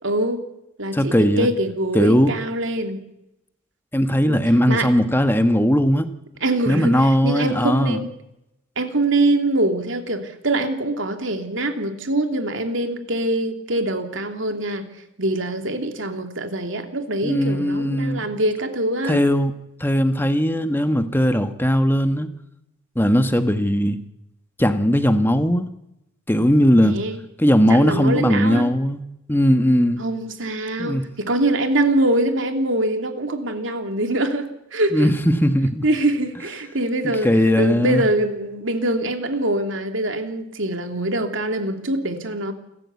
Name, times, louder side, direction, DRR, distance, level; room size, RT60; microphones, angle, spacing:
voice 1, 0.0-0.4 0.8-3.0 4.2-4.4 4.7-4.9 6.4-8.1 8.8-14.8 15.2-19.2 26.8-27.2 27.7-28.7 30.0-35.1 35.8-42.5, right 1 dB, 65° right, 6 dB, 2.9 m, -24 dB
voice 2, 0.9-1.5 1.9-2.4 3.9-6.1 6.7-8.0 17.2-18.3 19.0-19.5 19.8-22.3 22.9-24.0 24.6-25.7 26.3-27.0 27.4-29.0 29.3-30.0 30.8-31.0 34.9-35.8 37.0-38.0, equal, 10° left, 9 dB, 1.4 m, -18 dB
28.5 x 14.0 x 8.4 m, 0.86 s
head